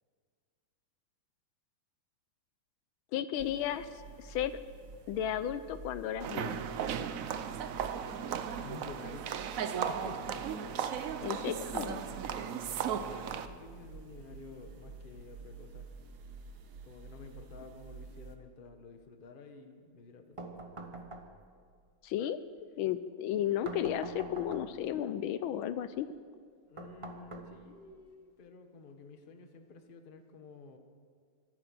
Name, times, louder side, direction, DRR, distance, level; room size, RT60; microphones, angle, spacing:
voice 1, 3.1-4.6 5.1-6.6 11.2-12.0 22.0-22.4 22.8-26.1, left 10 dB, 75° left, 13 dB, 1.4 m, -34 dB
sound 1, 3.4-18.4, right 4 dB, 55° right, 1.4 m, -50 dB
sound 2, 6.2-13.5, right 8 dB, 85° right, 0.7 m, -36 dB
voice 2, 8.6-9.3 9.9-10.5 12.2-15.9 16.8-20.5 26.6-30.8, left 4 dB, 35° left, 6 dB, 1.0 m, -51 dB
sound 3, 20.4-21.6 23.7-24.9 26.8-27.9, right 2 dB, 25° right, 0.6 m, -45 dB
24.5 x 8.9 x 6.1 m, 2.1 s
omnidirectional pair, 2.3 m